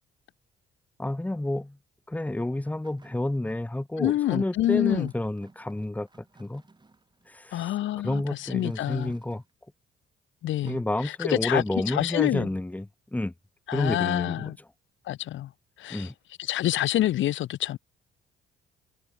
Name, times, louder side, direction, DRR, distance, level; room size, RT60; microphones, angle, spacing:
voice 1, 1.0-1.8 2.1-6.1 6.4-6.6 7.3-7.7 8.0-9.4 10.6-13.3 13.7-14.4 15.9-16.1, left 1 dB, 5° left, 1.2 m, -29 dB
sound 1, 2.6-3.8 4.8-7.5 8.5-9.5 10.6-10.8, right 3 dB, 20° right, 7.7 m, -59 dB
voice 2, 4.0-5.1 7.5-9.1 10.4-12.5 13.7-14.6 15.1-15.5 15.8-16.1 16.4-17.8, left 13 dB, 75° left, 0.9 m, -27 dB
cardioid pair, 90°, 20 cm